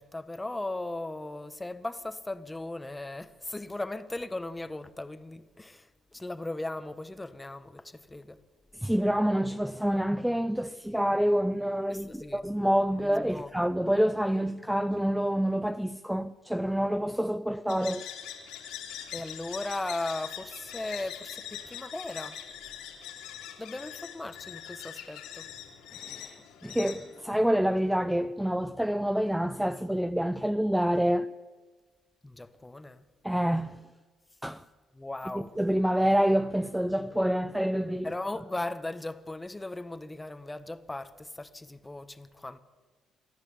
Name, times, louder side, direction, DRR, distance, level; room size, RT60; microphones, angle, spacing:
voice 1, 0.0-8.4 11.9-12.4 13.0-13.5 19.1-22.4 23.6-25.5 32.2-33.0 34.9-35.6 38.0-42.6, left 2 dB, 15° left, 1.6 m, -37 dB
voice 2, 8.8-18.1 25.9-26.4 26.6-31.3 33.2-33.8 34.4-34.6 35.3-38.1, equal, 5° right, 0.7 m, -27 dB
sound 1, 17.7-27.9, left 10 dB, 85° left, 3.5 m, -43 dB
27.5 x 12.0 x 8.7 m
supercardioid pair, 65°, 0 cm